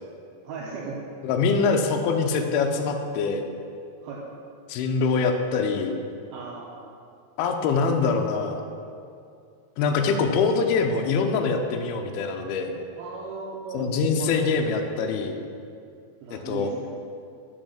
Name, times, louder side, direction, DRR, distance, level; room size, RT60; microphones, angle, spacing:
voice 1, 0.4-0.9 4.0-4.2 6.3-6.9 13.0-13.9 14.2-14.4 16.2-16.9, right 4 dB, 85° right, -3 dB, 2.1 m, -36 dB
voice 2, 1.2-3.5 4.7-6.0 7.4-8.6 9.8-12.7 13.7-15.4 16.3-16.7, left 4 dB, 90° left, 4 dB, 2.2 m, -24 dB
6.4 x 6.3 x 6.3 m, 2.4 s
omnidirectional pair, 5.2 m